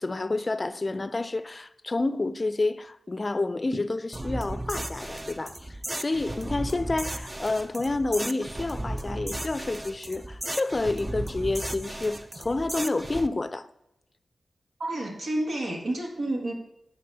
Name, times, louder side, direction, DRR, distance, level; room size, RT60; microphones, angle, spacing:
voice 1, 0.0-13.7, left 2 dB, 40° left, 0.4 m, -29 dB
sound 1, 4.1-13.3, right 1 dB, 25° right, 0.5 m, -35 dB
voice 2, 14.8-16.5, right 1 dB, 85° right, 1.7 m, -30 dB
9.9 x 4.1 x 5.4 m
cardioid pair, 60°, 0 cm